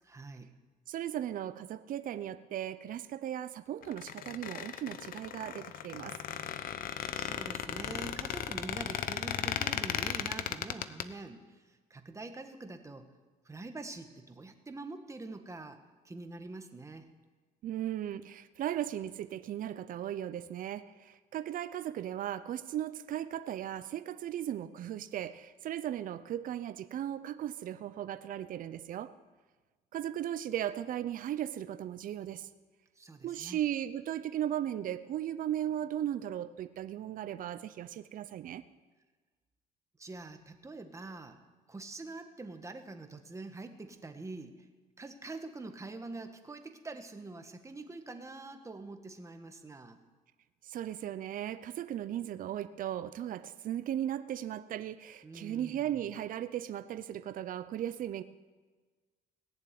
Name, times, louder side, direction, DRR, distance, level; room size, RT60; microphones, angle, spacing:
voice 1, 0.0-0.5 7.2-13.1 13.4-15.8 16.0-17.1 33.0-33.6 40.0-41.4 41.7-44.6 45.0-50.0 55.2-56.1, right 3 dB, 15° right, 6 dB, 1.5 m, -45 dB
voice 2, 0.9-6.2 17.6-29.1 29.9-32.5 33.2-38.7 50.6-58.2, right 11 dB, 55° right, 13 dB, 0.7 m, -37 dB
Squeak, 3.8-11.0, left 9 dB, 60° left, 0.8 m, -36 dB
18.0 x 7.4 x 9.4 m, 1.3 s
cardioid pair, 110°, 17 cm